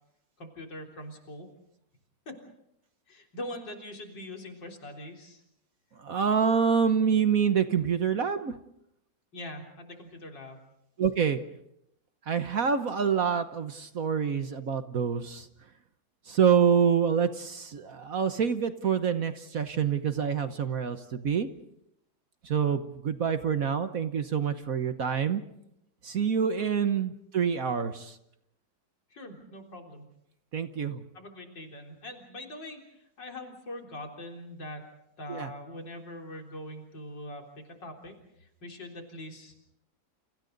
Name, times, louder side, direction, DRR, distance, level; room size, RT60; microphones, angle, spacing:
voice 1, 0.4-1.5 2.3-2.4 3.1-5.4 9.3-10.6 26.7-26.9 29.1-30.0 31.1-34.9 35.2-39.6, left 1 dB, 70° left, 1 dB, 4.4 m, -42 dB
voice 2, 6.0-8.6 11.0-11.4 12.3-15.5 16.3-21.5 22.4-25.4 26.0-28.2 30.5-31.0 35.3-35.5, right 7 dB, 55° right, 9 dB, 1.3 m, -26 dB
30.0 x 29.0 x 4.0 m, 0.79 s
omnidirectional pair, 2.0 m